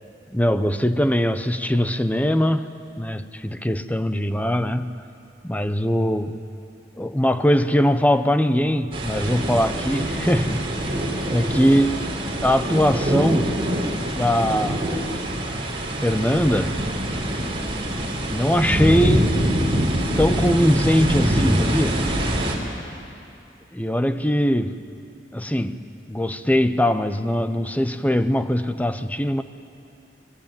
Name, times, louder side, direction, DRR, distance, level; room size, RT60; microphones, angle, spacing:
voice 1, 0.3-5.0 5.4-6.4 7.0-10.6 11.2-12.1 12.4-13.6 14.1-14.9 16.0-16.8 18.3-19.5 20.2-22.0 23.7-24.9 25.3-29.4, equal, 10° left, 10 dB, 0.9 m, -21 dB
sound 1, 8.9-22.5, right 1 dB, 30° right, 4.0 m, -24 dB
26.0 x 22.0 x 9.1 m, 2.6 s
head